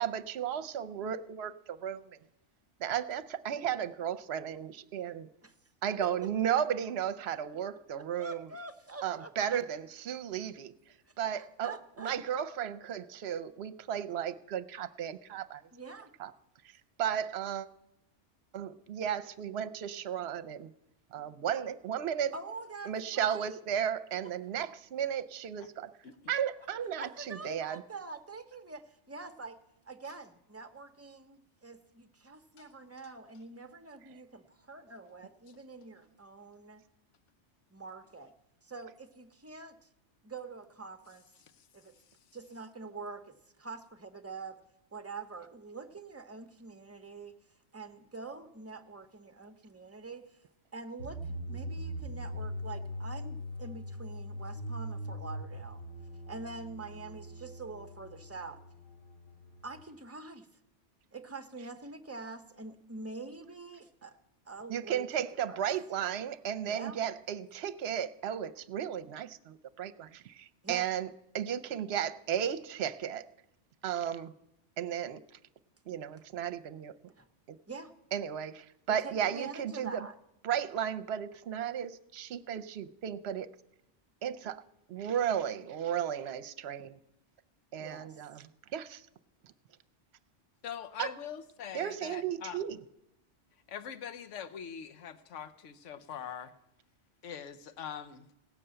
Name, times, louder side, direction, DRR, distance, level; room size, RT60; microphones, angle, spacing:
voice 1, 0.0-2.2 2.8-5.3 5.8-8.5 9.0-15.6 16.2-16.3 16.6-17.7 18.5-20.7 21.1-22.3 22.8-25.9 26.3-27.8 64.7-71.1 71.3-73.3 73.8-74.3 74.8-75.2 75.9-77.1 77.5-77.6 78.1-80.1 80.4-83.5 84.2-84.6 84.9-87.0 87.7-89.1 89.4-89.5 91.0-91.2 91.7-92.8, right 9 dB, 65° right, 14 dB, 0.9 m, -34 dB
voice 2, 8.2-9.6 11.3-12.1 15.7-16.1 22.3-23.6 27.0-36.8 37.7-38.3 38.6-39.9 40.2-41.2 41.7-41.9 42.3-44.6 44.9-47.3 47.7-50.4 50.7-55.8 56.3-58.6 59.6-60.5 61.1-64.2 64.5-65.1 65.5-65.6 66.6-67.0 70.6-70.9 77.2-77.3 77.7-77.9 78.9-80.1 87.8-88.2, right 3 dB, 15° right, 9 dB, 0.7 m, -45 dB
sound 1, 51.0-59.8, equal, 50° left, 1.2 m, -41 dB
voice 3, 90.6-92.6 93.7-96.5 97.2-98.3, left 8 dB, 85° left, 11 dB, 1.2 m, -43 dB
17.0 x 6.8 x 8.7 m, 0.90 s
omnidirectional pair, 1.2 m